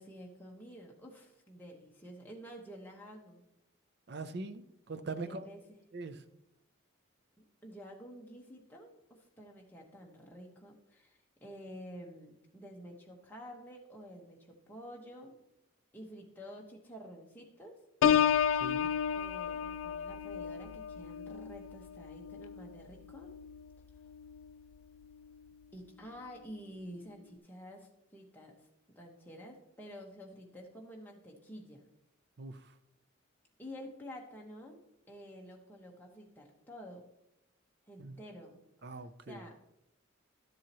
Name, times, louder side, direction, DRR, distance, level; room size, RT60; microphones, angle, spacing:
voice 1, 0.0-3.4 5.0-5.8 7.6-15.3 15.9-17.7 19.1-23.3 25.7-31.9 33.6-34.8 35.1-37.0 37.9-38.6 38.9-39.5, equal, 10° left, -1 dB, 1.2 m, -50 dB
voice 2, 4.1-5.5 5.9-6.2 18.6-18.9 32.4-32.7 38.0-38.2 38.8-39.5, right 3 dB, 50° right, 11 dB, 0.5 m, -42 dB
Piano, 18.0-23.6 24.1-24.5, left 8 dB, 75° left, 0.3 m, -32 dB
12.5 x 7.4 x 3.0 m, 0.85 s
head